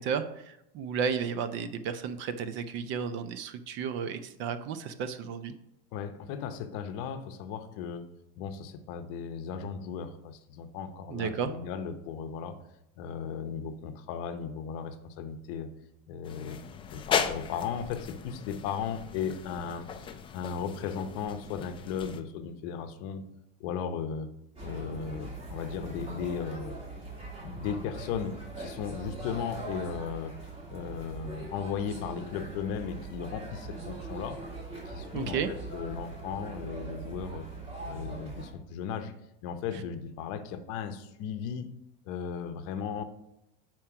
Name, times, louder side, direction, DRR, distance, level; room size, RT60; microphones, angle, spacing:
voice 1, 0.0-5.5 11.1-11.5 35.1-35.5, right 6 dB, 40° right, 11 dB, 0.6 m, -33 dB
voice 2, 5.9-8.1 8.4-12.6 13.0-15.7 16.1-16.6 16.9-19.9 20.3-23.3 23.6-24.3 24.6-26.8 27.4-30.4 30.7-34.4 34.9-37.5 37.9-39.1 39.4-41.7 42.1-43.0, left 7 dB, 50° left, 9 dB, 0.8 m, -36 dB
sound 1, 16.2-22.2, left 7 dB, 20° left, 0.4 m, -36 dB
sound 2, 24.6-38.5, right 3 dB, 20° right, 2.1 m, -41 dB
7.3 x 4.5 x 4.8 m, 0.82 s
supercardioid pair, 140°, 29 cm